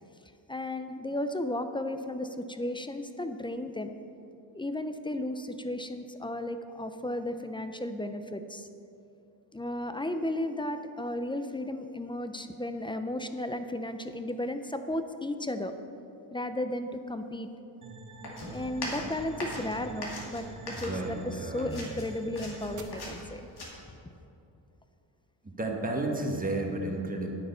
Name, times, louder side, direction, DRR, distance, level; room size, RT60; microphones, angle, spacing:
voice 1, 0.5-3.9 4.5-8.7 9.5-15.7 16.3-17.5 18.5-23.5, left 1 dB, 10° left, 9 dB, 0.4 m, -34 dB
sound 1, 17.8-22.8, right 3 dB, 40° right, 1.1 m, -47 dB
sound 2, 18.2-21.3 21.6-23.7, left 1 dB, 55° left, 2.5 m, -39 dB
voice 2, 20.8-21.8 25.4-27.3, right 2 dB, 20° right, 1 dB, 1.3 m, -32 dB
9.3 x 8.7 x 5.5 m, 2.7 s
wide cardioid pair, 130°, 47 cm